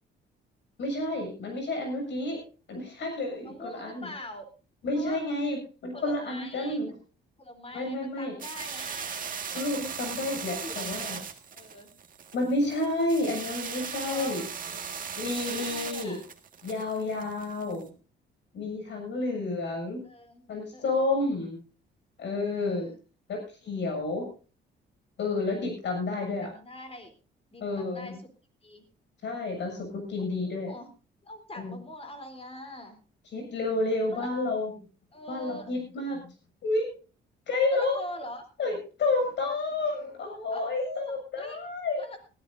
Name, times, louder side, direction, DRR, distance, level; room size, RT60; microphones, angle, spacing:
voice 1, 0.8-2.4 2.7-4.1 4.8-6.9 7.7-8.4 9.5-11.2 12.3-14.4 15.2-16.2 16.6-17.9 18.5-20.0 20.5-21.6 22.2-22.9 23.6-24.3 25.2-26.5 27.6-28.2 29.2-30.7 31.6-31.8 33.3-34.7 35.3-36.2 36.6-36.9 37.5-38.0 38.6-42.1, left 2 dB, 65° left, 3 dB, 7.3 m, -30 dB
voice 2, 3.4-4.5 4.9-5.3 5.9-7.0 7.4-9.2 10.0-10.3 10.6-11.1 11.5-11.9 13.9-14.4 15.6-16.2 20.0-21.1 22.5-22.9 26.4-27.1 27.5-28.3 28.6-28.8 30.4-30.9 31.2-33.0 34.1-34.3 35.1-35.7 37.7-38.4 40.5-41.6 42.0-42.3, left 1 dB, 30° left, 6 dB, 3.8 m, -43 dB
sound 1, 8.4-17.8, right 6 dB, 45° right, 1.9 m, -38 dB
19.5 x 13.5 x 2.7 m, 0.34 s
cardioid pair, 90°, 20 cm